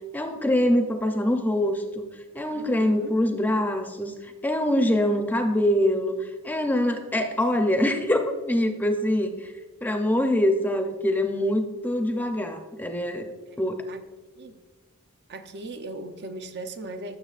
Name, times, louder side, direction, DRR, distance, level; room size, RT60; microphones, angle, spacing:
voice 1, 0.1-2.1 2.3-4.1 4.4-9.5 9.8-13.3 13.6-13.8, left 1 dB, 10° left, 5 dB, 0.6 m, -24 dB
voice 2, 2.5-3.2 7.4-7.5 7.8-7.9 13.0-13.6 13.9-14.0 14.4-14.6 15.3-17.2, right 2 dB, 50° right, 7 dB, 0.6 m, -39 dB
15.5 x 7.0 x 2.4 m, 1.4 s
head